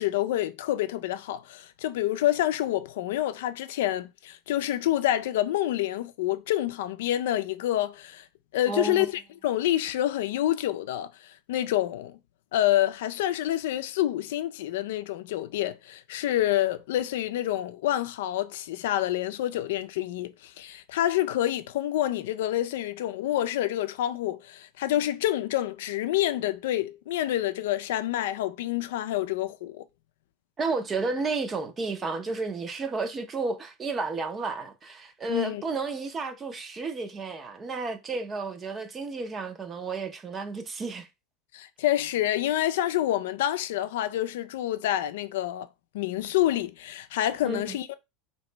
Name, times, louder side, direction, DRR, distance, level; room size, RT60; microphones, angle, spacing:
voice 1, 0.0-8.2 8.5-12.1 12.5-29.8 35.3-35.6 41.5-45.7 45.9-47.9, left 13 dB, 85° left, 0.4 m, -27 dB
voice 2, 8.7-9.1 30.6-41.1 47.4-47.8, right 3 dB, 20° right, 0.6 m, -32 dB
3.1 x 2.9 x 4.4 m
supercardioid pair, 160°, 0 cm